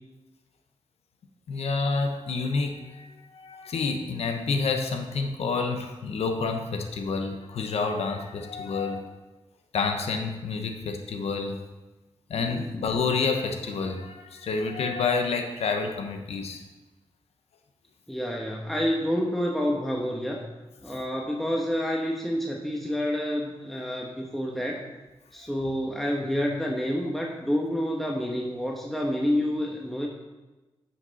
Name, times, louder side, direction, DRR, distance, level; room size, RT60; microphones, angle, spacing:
voice 1, 1.5-9.2 9.7-11.6 12.3-16.6, left 4 dB, 90° left, 5 dB, 1.0 m, -29 dB
voice 2, 12.4-12.8 18.1-20.4 20.8-24.9 25.3-30.1, equal, ahead, -1 dB, 1.1 m, -28 dB
9.7 x 5.8 x 4.1 m, 1.1 s
cardioid pair, 60°, 10 cm